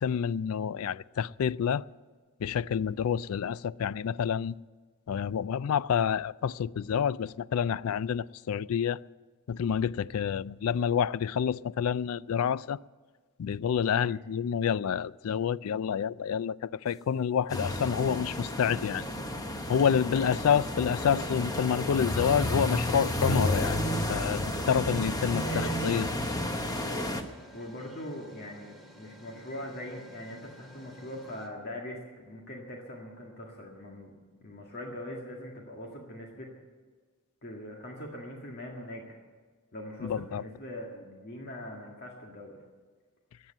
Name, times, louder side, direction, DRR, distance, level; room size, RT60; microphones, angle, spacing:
voice 1, 0.0-1.8 2.4-4.5 5.1-9.0 9.5-12.8 13.4-19.1 19.7-23.8 24.1-26.1 40.0-40.4, left 7 dB, 75° left, 0.3 m, -28 dB
sound 1, 16.9-17.3 19.0-19.1 21.2-31.5, equal, ahead, 2.2 m, -52 dB
sound 2, 17.5-27.2, left 1 dB, 15° left, 1.0 m, -31 dB
voice 2, 25.2-25.8 27.5-34.1 34.4-36.5 37.4-39.2 39.7-42.6, left 1 dB, 45° left, 1.9 m, -42 dB
14.5 x 9.5 x 9.1 m
head